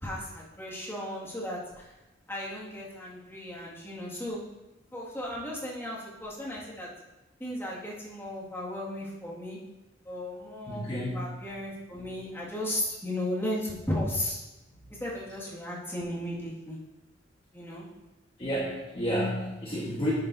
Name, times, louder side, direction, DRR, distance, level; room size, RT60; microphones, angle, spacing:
voice 1, 0.0-1.9 2.3-4.4 4.9-6.9 7.4-9.6 10.1-10.9 11.1-14.4 15.0-16.8 17.5-17.9, left 1 dB, 10° left, -6 dB, 2.0 m, -35 dB
voice 2, 10.7-11.2 18.4-20.1, equal, 30° left, -6 dB, 1.3 m, -30 dB
11.0 x 7.4 x 2.7 m, 1.0 s
head